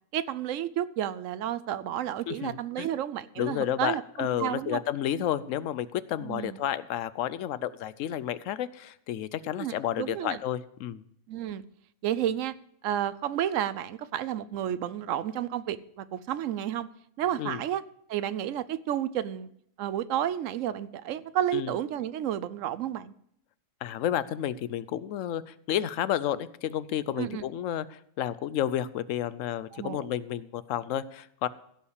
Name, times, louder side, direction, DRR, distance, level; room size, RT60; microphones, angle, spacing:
voice 1, 0.1-4.8 6.2-6.6 9.5-10.4 11.3-11.6 12.0-12.5 12.8-16.9 17.2-17.8 18.1-19.5 19.8-23.1 27.2-27.4 29.7-30.1, right 11 dB, 85° right, 1.0 m, -31 dB
voice 2, 2.3-2.9 3.4-11.0 17.4-17.6 21.5-21.7 23.8-31.5, left 11 dB, 80° left, 1.0 m, -31 dB
16.0 x 5.7 x 6.5 m
omnidirectional pair, 1.3 m